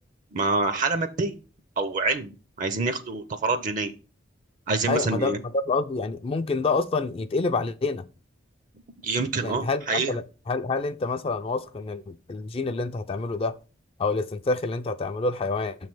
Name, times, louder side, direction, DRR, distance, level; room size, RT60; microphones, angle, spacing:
voice 1, 0.3-1.4 1.8-3.9 4.7-5.4 9.0-10.1, right 3 dB, 40° right, 0.5 m, -26 dB
voice 2, 4.9-8.0 9.4-13.6 14.0-15.8, left 3 dB, 30° left, 0.3 m, -27 dB
6.9 x 3.1 x 6.0 m
head